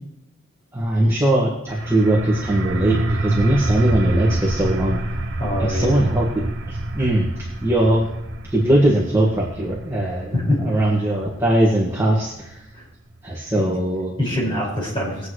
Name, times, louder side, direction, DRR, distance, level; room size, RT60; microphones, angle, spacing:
voice 1, 0.7-5.0 5.6-8.1 8.5-10.3 10.6-12.6 13.2-14.1, right 1 dB, 10° right, -5 dB, 1.8 m, -20 dB
sound 1, 1.7-13.1, right 1 dB, 55° right, 1.1 m, -27 dB
voice 2, 5.4-6.0 10.3-11.1 12.7-12.8 13.5-13.6 14.2-15.3, left 1 dB, 25° left, -5 dB, 5.3 m, -24 dB
21.5 x 8.2 x 3.2 m, 0.87 s
head